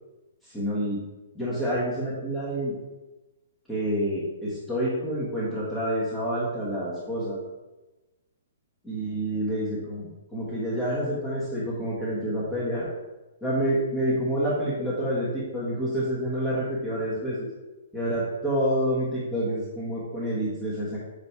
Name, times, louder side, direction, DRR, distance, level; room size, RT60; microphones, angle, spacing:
voice 1, 0.4-1.0 1.3-2.7 3.7-7.4 8.8-12.9 13.4-17.5 17.9-21.0, equal, 5° left, -9 dB, 1.5 m, -28 dB
8.3 x 3.1 x 4.7 m, 1.1 s
hypercardioid pair, 160°, 0 cm